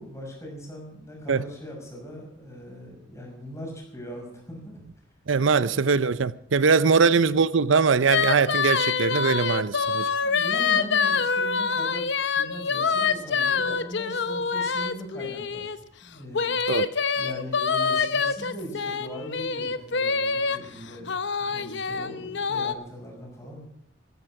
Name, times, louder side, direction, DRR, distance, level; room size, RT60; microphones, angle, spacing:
voice 1, 0.0-4.8 10.2-15.7 16.0-16.6 17.2-23.6, equal, 15° left, 6.0 m, -40 dB
voice 2, 5.3-10.1 16.7-16.9, right 5 dB, 75° right, 0.6 m, -21 dB
sound 1, 8.1-15.8 16.3-20.6 21.1-22.7, left 5 dB, 65° left, 0.9 m, -26 dB
14.5 x 14.0 x 6.0 m
head